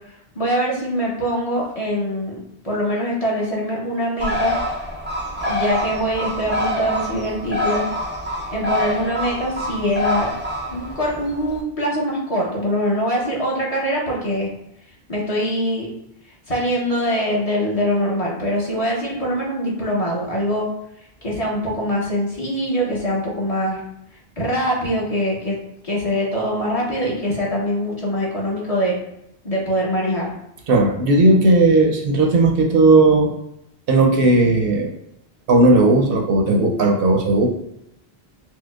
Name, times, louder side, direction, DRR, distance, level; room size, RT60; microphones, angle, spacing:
voice 1, 0.3-2.4 2.6-4.6 5.4-7.9 8.5-10.3 10.7-14.5 15.1-15.9 16.5-20.7 21.2-23.8 24.4-25.6 25.8-29.0 29.4-30.3, equal, 40° left, -4 dB, 0.8 m, -23 dB
Bird, 4.2-11.6, left 1 dB, 20° right, 0.3 m, -26 dB
voice 2, 30.7-33.3 33.9-34.9 35.5-37.5, right 2 dB, 70° right, 1 dB, 0.7 m, -15 dB
4.5 x 2.1 x 2.3 m, 0.79 s
omnidirectional pair, 1.0 m